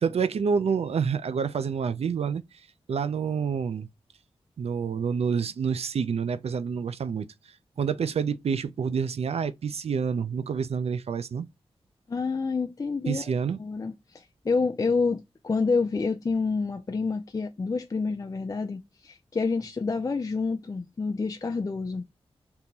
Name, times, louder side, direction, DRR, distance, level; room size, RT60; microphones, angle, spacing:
voice 1, 0.0-2.4 2.9-3.9 4.6-7.3 7.8-11.5 13.1-13.6, right 6 dB, 70° right, 0.4 m, -28 dB
voice 2, 12.1-22.0, left 4 dB, 35° left, 0.4 m, -28 dB
3.6 x 2.9 x 2.7 m
wide cardioid pair, 70°, 11 cm